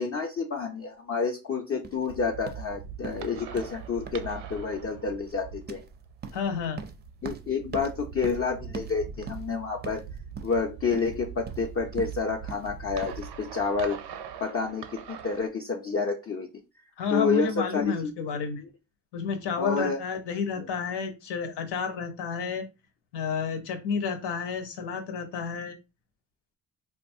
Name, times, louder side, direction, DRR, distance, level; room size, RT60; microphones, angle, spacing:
voice 1, 0.0-5.8 7.2-10.0 10.4-14.0 14.4-16.5 17.1-18.1 19.6-20.0 20.6-20.7, left 4 dB, 35° left, 1 dB, 0.5 m, -29 dB
sound 1, 1.8-13.2, right 5 dB, 25° right, 0.4 m, -44 dB
sound 2, 2.1-15.5, right 7 dB, 85° right, 0.6 m, -42 dB
voice 2, 6.3-6.8 17.0-18.6 19.1-22.7 23.1-25.8, left 6 dB, 90° left, 6 dB, 0.8 m, -30 dB
3.6 x 2.3 x 2.6 m, 0.26 s
cardioid pair, 100°, 40 cm